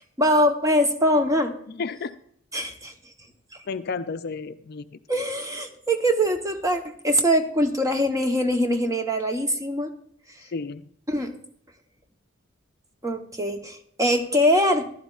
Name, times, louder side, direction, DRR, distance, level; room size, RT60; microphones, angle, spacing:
voice 1, 0.2-1.5 2.5-2.9 5.1-9.9 11.1-11.3 13.0-14.9, equal, 15° right, 5 dB, 0.9 m, -23 dB
voice 2, 1.7-2.1 3.7-5.0 10.4-10.8, left 4 dB, 50° left, 12 dB, 0.4 m, -32 dB
14.5 x 11.5 x 2.4 m, 0.66 s
head